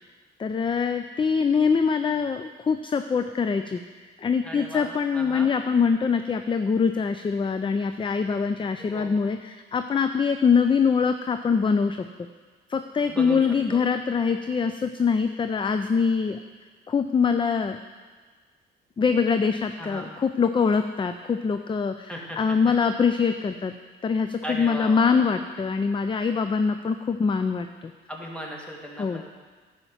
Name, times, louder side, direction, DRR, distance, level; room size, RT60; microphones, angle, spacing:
voice 1, 0.4-3.8 4.2-12.0 12.7-16.4 16.9-17.8 19.0-23.7 24.0-27.9 29.0-29.2, left 5 dB, 25° left, 8 dB, 0.5 m, -24 dB
voice 2, 4.4-5.5 8.9-9.1 13.1-13.8 19.8-20.1 22.1-22.7 24.4-25.3 28.1-29.2, equal, 5° left, -1 dB, 2.2 m, -37 dB
11.0 x 5.7 x 7.3 m, 1.5 s
cardioid pair, 90°, 20 cm